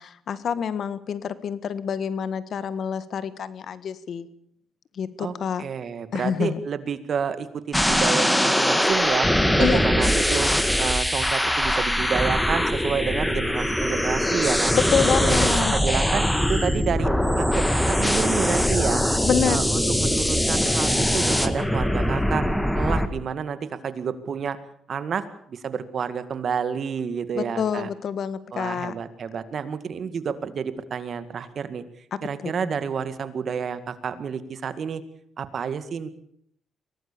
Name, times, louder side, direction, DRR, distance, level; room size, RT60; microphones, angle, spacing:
voice 1, 0.0-4.3 5.0-5.6 6.1-6.6 9.6-9.8 14.7-15.7 19.2-19.6 27.3-28.9 32.1-32.5, left 7 dB, 60° left, 14 dB, 1.6 m, -27 dB
voice 2, 5.2-9.3 9.6-10.5 10.8-14.7 15.2-19.0 19.4-22.4 22.7-24.6 24.9-27.9 28.5-31.8 32.2-35.0 35.4-36.1, right 6 dB, 55° right, 12 dB, 2.1 m, -29 dB
sound 1, 7.7-23.1, equal, 5° left, 2.0 m, -22 dB
23.5 x 18.0 x 7.0 m, 0.66 s
cardioid pair, 90°, 0 cm